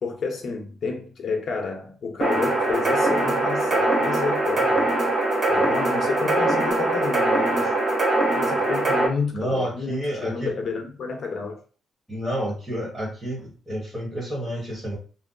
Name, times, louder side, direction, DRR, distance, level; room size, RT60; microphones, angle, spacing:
voice 1, 0.0-4.9 5.5-7.7 8.3-11.6, left 4 dB, 45° left, 0.8 m, -30 dB
sound 1, 2.2-9.1, right 2 dB, 35° right, 0.9 m, -22 dB
voice 2, 9.3-10.5 12.1-15.0, equal, 10° right, 1.1 m, -29 dB
2.6 x 2.0 x 3.8 m
wide cardioid pair, 165°, 0 cm